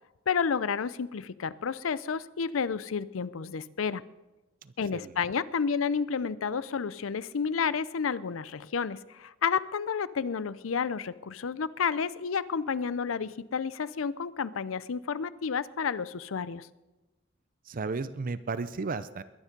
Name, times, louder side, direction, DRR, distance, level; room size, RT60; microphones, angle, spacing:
voice 1, 0.3-4.0 4.8-16.7, left 6 dB, 90° left, 17 dB, 0.5 m, -31 dB
voice 2, 4.6-5.3 17.7-19.2, right 4 dB, 45° right, 14 dB, 0.5 m, -34 dB
21.5 x 9.9 x 5.3 m, 1.1 s
head